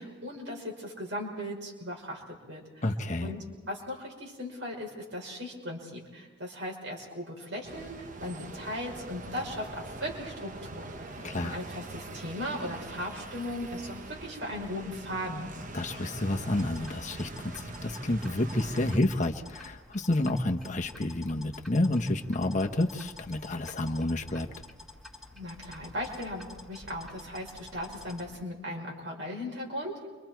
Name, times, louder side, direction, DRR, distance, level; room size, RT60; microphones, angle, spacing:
voice 1, 0.0-2.8 3.2-15.5 25.3-30.1, left 1 dB, 65° right, 0 dB, 5.9 m, -38 dB
voice 2, 2.8-3.3 11.2-11.6 15.7-24.5, left 1 dB, 35° left, 4 dB, 1.1 m, -29 dB
sound 1, 7.6-19.0, right 2 dB, 40° right, 1.0 m, -43 dB
sound 2, 16.3-28.4, left 2 dB, ahead, 1.9 m, -49 dB
30.0 x 25.0 x 4.6 m, 1.4 s
head